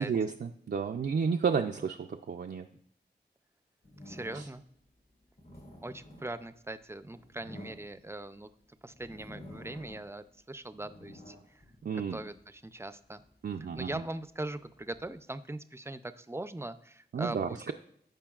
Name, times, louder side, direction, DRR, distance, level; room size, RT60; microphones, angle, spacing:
voice 1, 0.0-2.7 4.3-4.5 11.8-12.2 13.4-13.9 17.1-17.7, right 6 dB, 70° right, 3 dB, 0.4 m, -31 dB
sound 1, 3.8-4.7 5.2-8.4 8.9-10.2 10.6-12.5 13.1-15.2, left 1 dB, 55° left, 2.2 m, -51 dB
voice 2, 4.1-4.6 5.8-8.5 8.8-11.6 12.1-13.2 13.7-17.7, right 2 dB, 15° right, 12 dB, 0.5 m, -41 dB
14.5 x 5.3 x 2.4 m, 0.69 s
wide cardioid pair, 60°, 18 cm